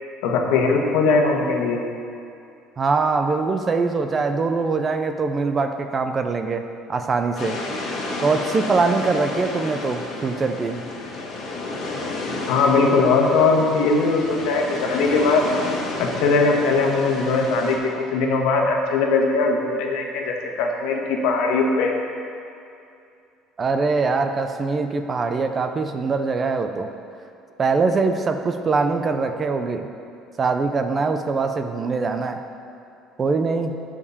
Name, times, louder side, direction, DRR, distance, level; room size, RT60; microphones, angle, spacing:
voice 1, 0.2-1.8 12.5-15.5 16.0-21.9, left 4 dB, 75° left, 1 dB, 1.3 m, -20 dB
voice 2, 2.8-7.6 8.2-10.8 23.6-26.9 27.6-29.9 30.4-32.4 33.2-33.8, right 4 dB, 25° right, 7 dB, 0.4 m, -23 dB
sound 1, 7.4-17.8, left 2 dB, 40° left, 1.6 m, -31 dB
9.6 x 5.0 x 6.9 m, 2.5 s
cardioid pair, 160°, 0 cm